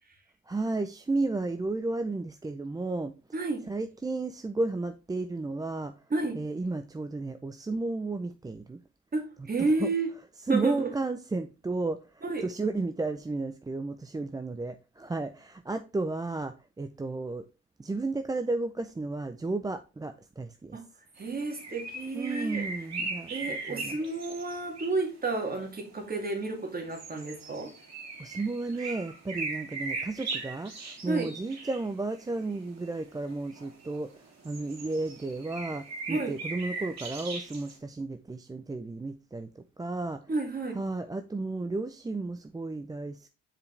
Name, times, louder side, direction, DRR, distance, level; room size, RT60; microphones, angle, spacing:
voice 1, 0.5-3.1 3.7-5.9 6.3-8.8 9.6-9.9 10.5-17.5 17.8-20.8 22.1-24.0 28.2-40.2 40.7-43.3, right 3 dB, 15° right, 0.4 m, -33 dB
voice 2, 3.3-3.6 6.1-6.4 9.1-10.1 10.5-10.9 12.2-12.4 20.7-20.8 21.2-22.7 23.3-27.7 31.1-31.3 36.1-36.3 40.3-40.8, right 3 dB, 30° right, 2.1 m, -31 dB
sound 1, 21.2-25.2 25.6-25.7 26.2-26.3 26.9-34.0 34.4-37.8, right 3 dB, 60° right, 2.6 m, -39 dB
7.1 x 5.0 x 3.2 m
cardioid pair, 90°, 30 cm